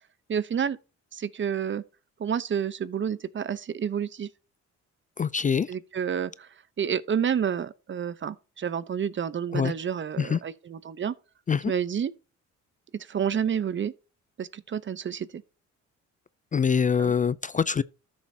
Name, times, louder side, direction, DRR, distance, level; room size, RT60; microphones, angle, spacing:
voice 1, 0.3-0.8 1.1-1.8 2.2-4.3 5.7-6.5 6.8-11.1 11.7-12.1 12.9-13.9 14.4-15.4 17.0-17.1, right 8 dB, 40° right, 0.8 m, -29 dB
voice 2, 5.2-5.7 9.5-9.7 10.2-10.4 11.5-11.7 16.5-17.8, left 6 dB, 25° left, 0.4 m, -24 dB
13.0 x 7.1 x 2.8 m
cardioid pair, 90°, 30 cm